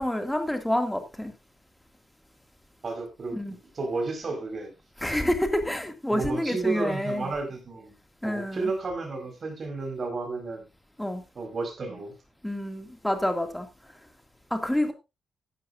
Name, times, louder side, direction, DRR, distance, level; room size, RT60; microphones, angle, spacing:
voice 1, 0.0-1.3 3.3-3.5 5.0-7.3 8.2-8.7 11.0-11.2 12.4-13.7 14.5-14.9, left 1 dB, 5° left, 2.2 m, -28 dB
voice 2, 2.8-4.7 6.1-7.9 8.2-10.7 11.3-12.1, right 3 dB, 40° right, 4.6 m, -32 dB
15.0 x 12.0 x 2.5 m
wide cardioid pair, 150°, 0 cm